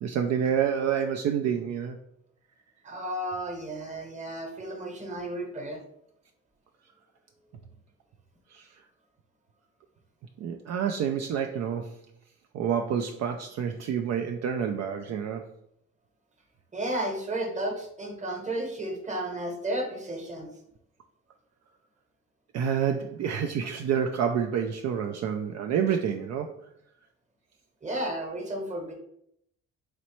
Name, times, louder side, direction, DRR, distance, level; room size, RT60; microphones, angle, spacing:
voice 1, 0.0-2.0 8.5-8.7 10.4-11.9 12.5-15.5 22.5-26.5, right 8 dB, 60° right, 4 dB, 0.4 m, -28 dB
voice 2, 2.8-5.8 16.7-20.5 27.8-28.9, right 1 dB, 25° right, 3 dB, 1.0 m, -33 dB
4.0 x 3.1 x 3.0 m, 0.75 s
cardioid pair, 90°, 30 cm